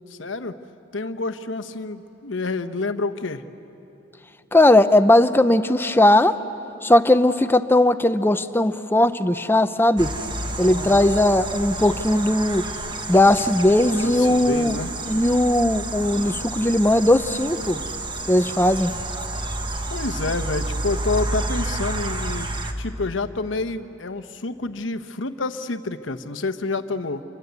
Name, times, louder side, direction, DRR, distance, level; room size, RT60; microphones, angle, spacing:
voice 1, 0.1-0.5 0.9-3.4 10.6-11.1 13.2-13.5 13.9-14.9 19.9-22.5 22.8-27.2, left 3 dB, 75° left, 9 dB, 1.0 m, -28 dB
voice 2, 4.5-6.4 6.8-10.1 10.6-12.7 13.1-14.8 15.1-17.8 18.3-18.9, left 1 dB, 10° left, 10 dB, 0.7 m, -18 dB
sound 1, 10.0-22.7, right 2 dB, 25° right, 1.4 m, -30 dB
29.0 x 24.5 x 8.2 m, 3.0 s
head